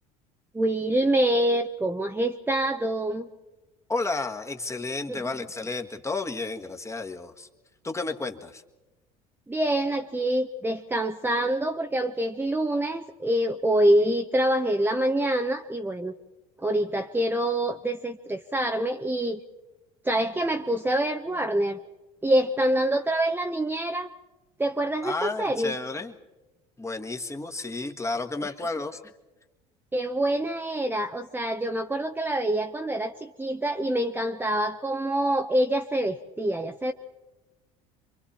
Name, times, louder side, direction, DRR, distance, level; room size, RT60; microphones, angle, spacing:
voice 1, 0.5-3.3 5.1-5.2 9.5-16.1 16.6-19.4 20.0-21.8 22.2-24.1 24.6-25.7 29.9-36.9, right 1 dB, 10° right, 4 dB, 0.9 m, -26 dB
voice 2, 3.9-7.5 7.8-8.6 25.0-26.1 26.8-29.0, left 3 dB, 15° left, 5 dB, 1.7 m, -32 dB
26.5 x 23.5 x 4.3 m, 1.1 s
hypercardioid pair, 80°, 18 cm